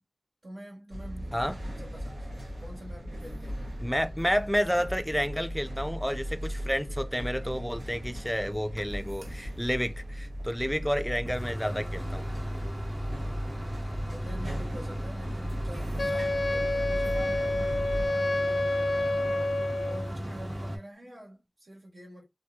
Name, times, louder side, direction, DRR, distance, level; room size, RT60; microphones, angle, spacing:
voice 1, 0.4-3.7 10.7-10.8 13.1-13.6 14.0-19.5 19.8-22.2, right 1 dB, 75° right, 1.5 m, -46 dB
sound 1, 0.9-18.1, equal, 90° right, 0.9 m, -37 dB
voice 2, 3.8-12.2, equal, 5° left, 0.4 m, -30 dB
sound 2, 8.8-8.9 9.2-9.3 11.3-20.8, equal, 45° right, 1.0 m, -36 dB
Wind instrument woodwind instrument, 16.0-20.1, left 2 dB, 80° left, 0.3 m, -29 dB
2.8 x 2.7 x 2.3 m
cardioid pair, 40°, 0 cm